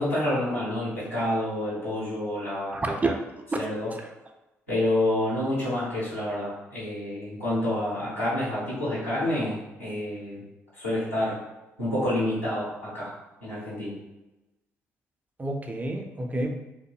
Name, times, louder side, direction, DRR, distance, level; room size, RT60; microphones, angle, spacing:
voice 1, 0.0-2.9 3.5-3.9 4.7-10.4 10.8-11.4 11.8-13.1 13.4-14.0, left 1 dB, 90° left, -11 dB, 1.0 m, -28 dB
voice 2, 2.7-3.2 4.0-4.1 15.4-16.5, right 2 dB, 20° right, 3 dB, 0.4 m, -28 dB
2.6 x 2.5 x 2.3 m, 1.0 s
figure-of-eight pair, 40°, 7 cm